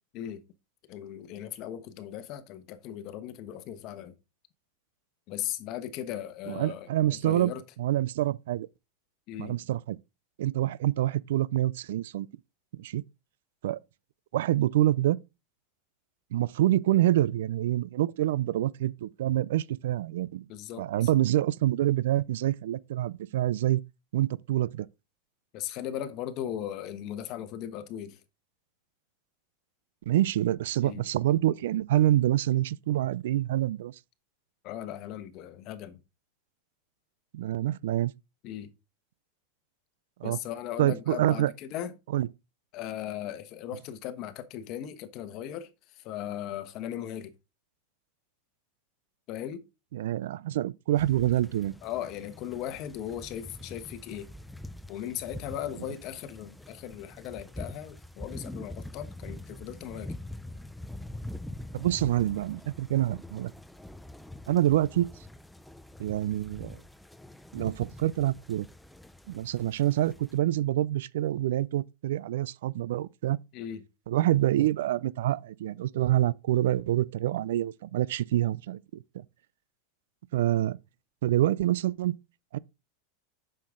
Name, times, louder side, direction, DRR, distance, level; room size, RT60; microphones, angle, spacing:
voice 1, 0.9-4.1 5.3-7.6 9.3-9.7 20.5-21.1 25.5-28.2 30.8-31.1 34.6-36.0 38.4-38.7 40.2-41.9 42.7-47.3 49.3-49.6 51.8-54.3 54.9-60.2 73.5-73.8, left 11 dB, 45° left, 1.1 m, -38 dB
voice 2, 6.5-7.5 7.8-8.7 9.4-10.0 10.4-12.3 12.8-13.0 13.6-13.8 14.3-15.2 16.3-20.5 20.8-23.8 24.1-24.9 30.1-33.9 37.3-38.1 40.2-40.4 40.8-41.5 42.1-42.3 49.9-51.7 61.7-63.5 64.5-65.1 66.0-66.8 67.5-68.7 69.3-73.4 74.1-79.2 80.3-80.8 81.2-82.2 82.5-82.6, right 13 dB, 80° right, 0.4 m, -26 dB
sound 1, 51.0-70.4, left 1 dB, 5° left, 0.5 m, -44 dB
7.7 x 6.5 x 3.7 m
supercardioid pair, 145°, 0 cm